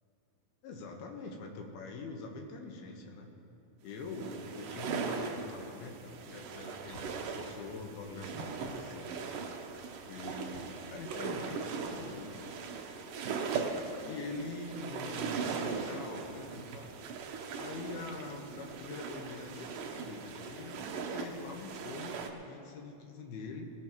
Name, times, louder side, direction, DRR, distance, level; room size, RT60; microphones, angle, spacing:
voice 1, 0.6-3.3 3.8-9.3 10.0-12.6 13.3-13.5 14.0-16.9 17.6-23.7, left 3 dB, 70° left, 2 dB, 2.8 m, -44 dB
sound 1, 4.0-22.3, right 5 dB, 85° right, 1.9 m, -39 dB
sound 2, 6.9-7.1 8.5-10.1 10.5-10.8 11.1-11.2 11.6-13.1, equal, 30° left, 2.5 m, -54 dB
20.5 x 17.0 x 3.1 m, 2.8 s
omnidirectional pair, 5.3 m